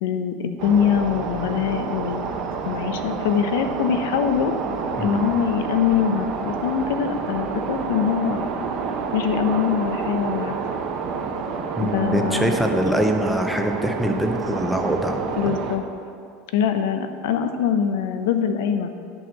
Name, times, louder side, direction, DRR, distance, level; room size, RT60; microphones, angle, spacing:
voice 1, 0.0-2.4 2.7-4.5 5.0-8.4 9.1-10.5 11.8-12.5 15.4-15.8 16.5-18.9, left 8 dB, 75° left, 8 dB, 0.7 m, -23 dB
sound 1, 0.6-15.8, right 5 dB, 40° right, 0.8 m, -29 dB
voice 2, 5.0-5.3 11.8-15.2, equal, ahead, 3 dB, 0.6 m, -23 dB
8.8 x 4.5 x 7.4 m, 2.4 s
supercardioid pair, 175°, 0 cm